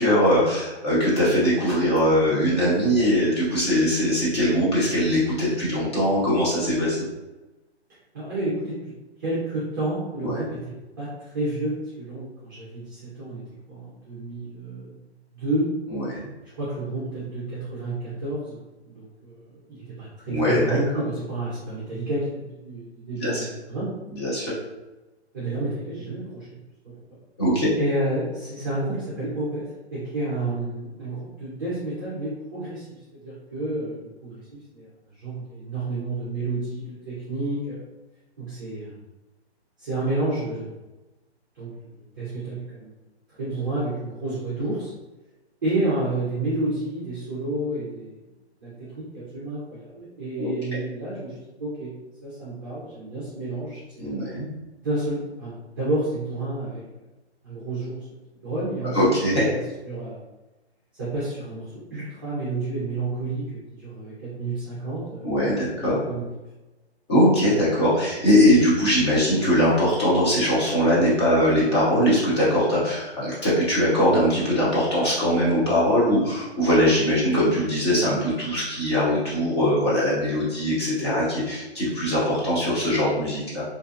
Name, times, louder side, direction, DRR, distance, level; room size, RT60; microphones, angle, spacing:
voice 1, 0.0-7.0 10.2-10.4 15.9-16.3 20.3-20.8 23.2-23.5 24.1-24.5 27.4-27.7 50.4-50.5 54.0-54.5 58.9-59.5 65.2-66.0 67.1-83.6, equal, 25° left, -7 dB, 0.6 m, -21 dB
voice 2, 8.1-8.8 9.2-10.6 11.0-11.1 11.3-13.4 13.7-14.9 15.3-15.7 16.6-18.6 18.8-23.9 25.3-26.6 27.8-29.7 29.9-32.9 33.2-34.4 34.7-34.9 35.2-37.8 38.4-39.0 39.8-40.7 41.5-41.7 42.2-42.9 43.4-44.9 45.6-48.2 48.6-51.9 52.2-54.2 54.8-56.8 57.4-58.0 58.4-59.2 59.5-59.6 59.8-60.2 61.0-65.4 65.7-66.3, right 2 dB, 20° right, -10 dB, 0.5 m, -30 dB
2.5 x 2.3 x 2.6 m, 1.1 s
hypercardioid pair, 155°, 33 cm